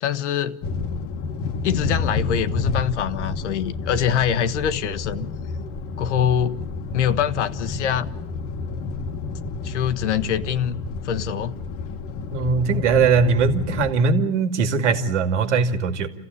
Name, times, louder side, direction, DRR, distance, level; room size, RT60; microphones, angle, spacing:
voice 1, 0.0-0.6 1.6-5.3 6.0-6.6 6.9-8.1 9.6-10.8 11.0-11.6, left 9 dB, 80° left, 1.3 m, -24 dB
sound 1, 0.6-13.9, left 4 dB, 40° left, 1.3 m, -30 dB
voice 2, 12.3-16.1, right 5 dB, 80° right, 2.4 m, -20 dB
28.0 x 15.5 x 9.7 m
supercardioid pair, 125°, 35 cm